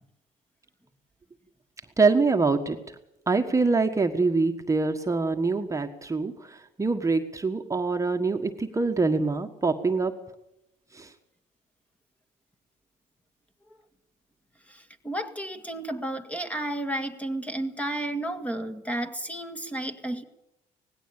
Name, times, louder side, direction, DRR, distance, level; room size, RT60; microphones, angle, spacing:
voice 1, 2.0-2.8 3.3-10.1 10.9-11.1, right 3 dB, 20° right, 4 dB, 1.5 m, -24 dB
voice 2, 14.7-20.2, right 1 dB, 10° left, 8 dB, 1.8 m, -32 dB
19.0 x 16.5 x 8.8 m, 0.86 s
cardioid pair, 110°, 17 cm